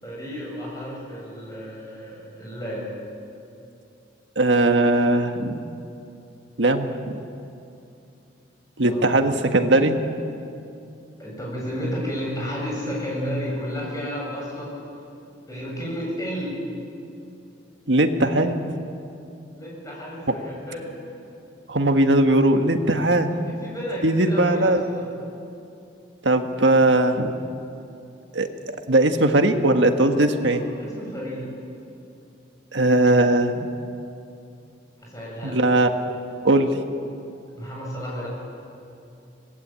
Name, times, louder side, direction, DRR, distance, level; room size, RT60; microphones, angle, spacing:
voice 1, 0.0-2.9 8.8-9.1 11.2-14.8 15.5-16.6 19.5-21.0 23.4-25.1 30.3-31.5 35.0-35.6 37.5-38.3, equal, 20° left, -3 dB, 7.4 m, -32 dB
voice 2, 4.3-5.6 6.6-7.2 8.8-10.0 17.9-18.5 21.7-23.3 24.0-24.8 26.2-27.3 28.3-28.5 28.9-30.6 32.7-33.7 35.4-35.9 36.4-36.7, right 2 dB, 70° right, 6 dB, 1.6 m, -19 dB
25.0 x 19.0 x 8.9 m, 2.7 s
head